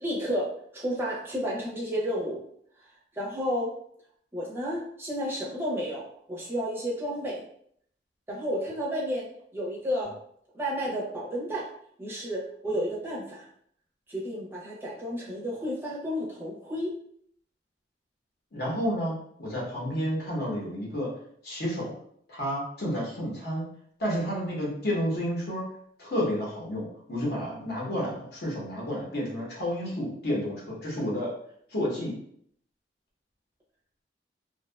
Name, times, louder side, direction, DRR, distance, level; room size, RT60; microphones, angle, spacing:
voice 1, 0.0-2.4 3.1-3.7 4.3-7.4 8.3-9.3 9.5-10.1 10.5-11.7 12.0-13.5 14.1-16.9, equal, 15° right, -5 dB, 0.5 m, -31 dB
voice 2, 18.5-21.1 21.4-21.9 22.3-23.6 24.0-25.6 26.0-31.3 31.7-32.1, equal, 60° left, -4 dB, 0.8 m, -30 dB
2.6 x 2.2 x 2.2 m, 0.67 s
head